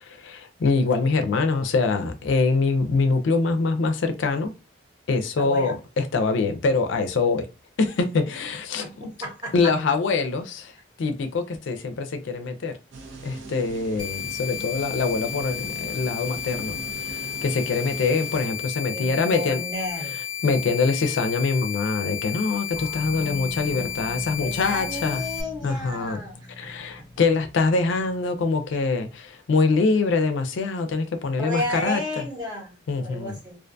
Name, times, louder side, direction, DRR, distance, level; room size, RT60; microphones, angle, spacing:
voice 1, 0.0-4.5 5.1-7.5 7.8-9.1 9.5-12.7 13.2-19.6 20.0-25.2 25.6-26.2 26.6-32.0 32.9-33.4, left 4 dB, 85° left, 0.4 m, -24 dB
voice 2, 5.4-5.7 8.8-9.7 18.9-20.2 24.4-26.9 31.4-33.6, left 1 dB, 20° right, 0.8 m, -33 dB
sound 1, 12.9-18.5, right 3 dB, 85° right, 0.6 m, -41 dB
sound 2, 14.0-25.4, left 9 dB, 25° left, 0.5 m, -33 dB
sound 3, 22.7-29.1, equal, 50° right, 1.3 m, -41 dB
2.4 x 2.2 x 2.5 m
head